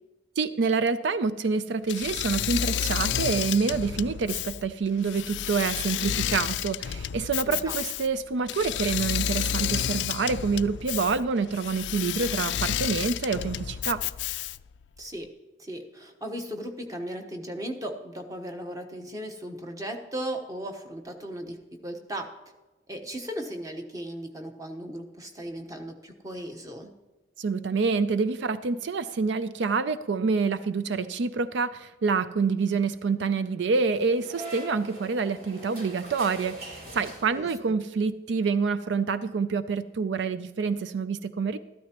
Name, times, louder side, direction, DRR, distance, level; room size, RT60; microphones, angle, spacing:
voice 1, 0.4-14.0 27.4-41.6, right 4 dB, 80° right, 13 dB, 0.4 m, -27 dB
Engine / Mechanisms, 1.9-14.8, left 10 dB, 80° left, 0.3 m, -30 dB
voice 2, 7.4-7.8 15.0-15.3 15.6-21.6 21.8-22.3 22.9-26.9 37.4-37.5, right 1 dB, 20° right, 4 dB, 1.1 m, -36 dB
sound 1, 33.8-37.7, right 2 dB, 55° right, 2.9 m, -42 dB
13.5 x 12.5 x 3.0 m, 1.1 s
head